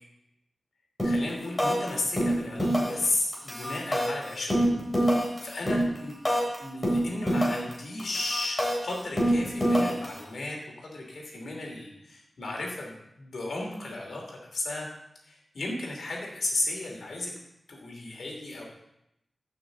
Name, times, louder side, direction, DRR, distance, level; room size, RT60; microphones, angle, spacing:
voice 1, 1.0-4.6 5.1-6.2 6.6-14.9 15.2-17.3 17.7-18.6, left 2 dB, 75° left, 0 dB, 2.8 m, -34 dB
sound 1, 1.0-1.3 1.6-1.9 2.2-3.1 3.3-6.6 6.8-7.7 8.0-10.2, equal, 15° left, 3.4 m, -25 dB
15.5 x 6.2 x 3.9 m, 0.84 s
wide cardioid pair, 105°, 0 cm